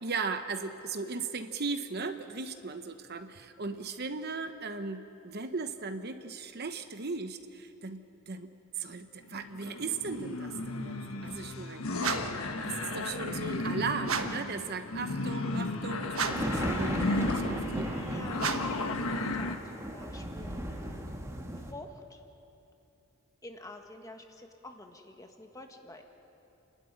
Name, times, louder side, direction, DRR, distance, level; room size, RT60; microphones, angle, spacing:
voice 1, 0.0-8.5 8.8-11.9 12.6-17.0 17.3-18.3, right 4 dB, 50° right, 8 dB, 1.0 m, -37 dB
sound 1, 9.3-19.6, left 2 dB, 80° left, 1.4 m, -34 dB
sound 2, 12.0-12.5 14.0-14.5 16.1-16.6 18.4-18.9, right 5 dB, 75° right, 1.2 m, -33 dB
sound 3, 16.3-21.7, right 1 dB, 15° right, 1.6 m, -36 dB
voice 2, 18.0-21.1 21.6-22.2 23.4-26.0, left 2 dB, 15° left, 4 dB, 1.5 m, -48 dB
29.5 x 12.5 x 9.8 m, 2.8 s
head